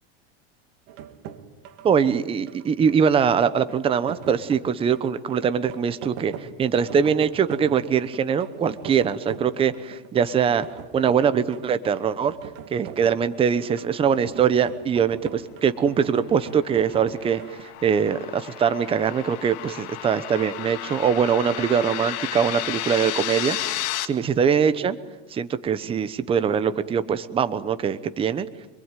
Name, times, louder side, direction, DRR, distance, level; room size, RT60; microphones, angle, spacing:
sound 1, 0.9-17.6, right 9 dB, 60° right, 2.5 m, -41 dB
voice 1, 1.8-10.7 10.9-12.3 12.7-25.0 25.3-28.5, right 7 dB, 15° right, 12 dB, 0.9 m, -22 dB
sound 2, 16.3-24.0, left 15 dB, 50° left, 1.9 m, -33 dB
27.0 x 22.5 x 9.1 m, 1.1 s
supercardioid pair, 155°, 32 cm